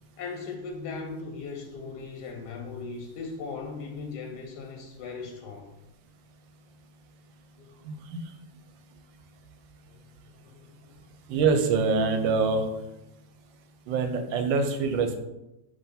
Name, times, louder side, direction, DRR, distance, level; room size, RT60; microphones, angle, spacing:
voice 1, 0.2-5.7 7.6-7.8 9.9-10.0 10.4-11.0, left 4 dB, 75° left, 3 dB, 1.1 m, -38 dB
voice 2, 7.8-8.2 11.3-12.7 13.9-15.2, right 4 dB, 85° right, 6 dB, 1.4 m, -25 dB
5.0 x 2.6 x 4.1 m, 0.95 s
omnidirectional pair, 2.0 m